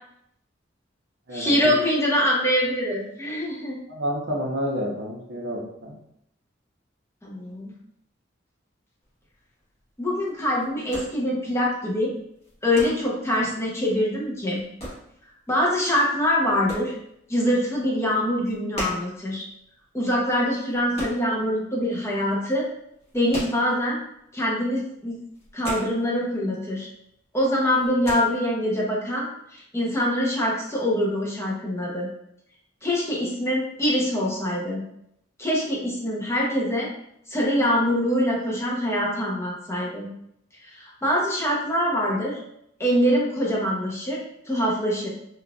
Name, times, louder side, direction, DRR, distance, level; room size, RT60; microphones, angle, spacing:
voice 1, 1.3-3.8 7.2-7.7 10.0-12.1 12.6-14.6 15.5-16.9 17.3-19.4 19.9-22.6 23.1-24.0 24.3-25.2 25.5-26.9 27.3-32.1 32.8-34.8 35.4-36.9 37.3-40.1 40.7-42.4 42.8-44.2 44.5-45.1, equal, 15° left, -4 dB, 0.7 m, -24 dB
voice 2, 3.9-6.0, equal, 70° right, -1 dB, 0.8 m, -29 dB
sound 1, 9.0-22.0 22.2-24.2 24.5-24.6 24.9-26.5 26.8-27.3 27.5-28.1, equal, 35° left, 1.3 m, -38 dB
3.8 x 2.4 x 2.3 m, 0.75 s
head